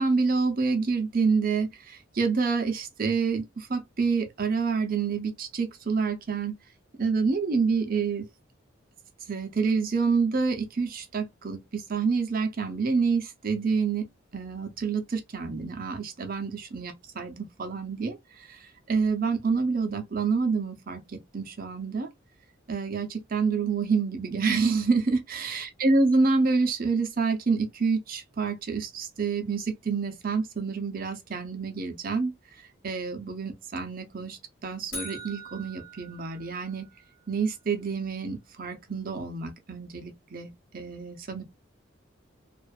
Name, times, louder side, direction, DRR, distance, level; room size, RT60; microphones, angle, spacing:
voice 1, 0.0-6.6 7.0-8.3 9.3-22.1 22.7-32.3 32.8-36.9 37.3-41.4, right 4 dB, 45° right, 0.6 m, -28 dB
sound 1, 34.9-37.0, right 1 dB, 45° left, 1.2 m, -42 dB
2.5 x 2.4 x 2.4 m
head